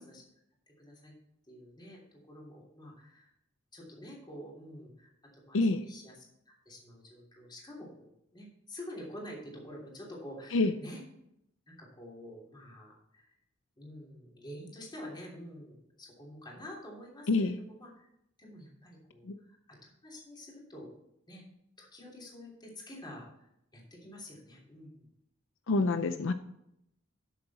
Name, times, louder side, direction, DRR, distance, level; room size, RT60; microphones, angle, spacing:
voice 1, 0.7-1.1 1.5-3.3 3.7-11.0 11.7-13.3 13.8-18.1 18.4-20.9 21.3-21.5 21.8-23.3 23.7-25.1 25.9-26.3, left 1 dB, 20° left, -3 dB, 3.0 m, -48 dB
voice 2, 5.5-5.8 10.5-10.7 17.3-17.6 19.3-19.4 25.7-26.3, left 3 dB, 70° left, 10 dB, 0.6 m, -27 dB
12.0 x 7.0 x 4.1 m, 0.78 s
head